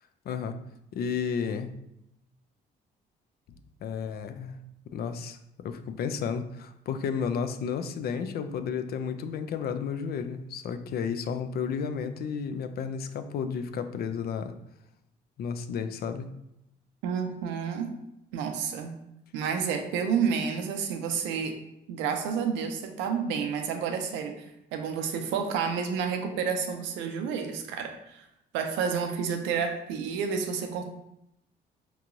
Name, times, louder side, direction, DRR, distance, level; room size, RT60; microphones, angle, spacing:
voice 1, 0.3-0.6 0.9-1.7 3.8-4.6 4.9-14.5 15.4-16.3, left 6 dB, 55° left, 9 dB, 0.4 m, -32 dB
voice 2, 17.0-17.9 18.3-18.9 19.3-21.6 21.9-24.4 24.7-28.2 28.5-30.8, right 6 dB, 85° right, 6 dB, 0.5 m, -30 dB
4.6 x 2.9 x 2.6 m, 0.83 s
supercardioid pair, 75°, 19 cm